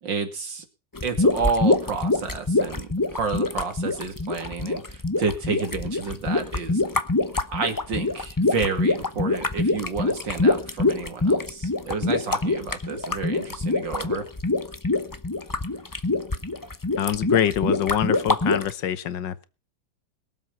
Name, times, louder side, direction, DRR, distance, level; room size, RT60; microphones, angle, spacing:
voice 1, 0.0-0.6 1.0-6.8 7.5-14.2, right 4 dB, 75° right, 7 dB, 3.1 m, -30 dB
sound 1, 0.9-18.7, left 2 dB, 25° left, 0.4 m, -24 dB
voice 2, 17.0-19.4, left 10 dB, 75° left, 15 dB, 1.7 m, -25 dB
21.5 x 7.9 x 5.6 m, 0.33 s
omnidirectional pair, 2.0 m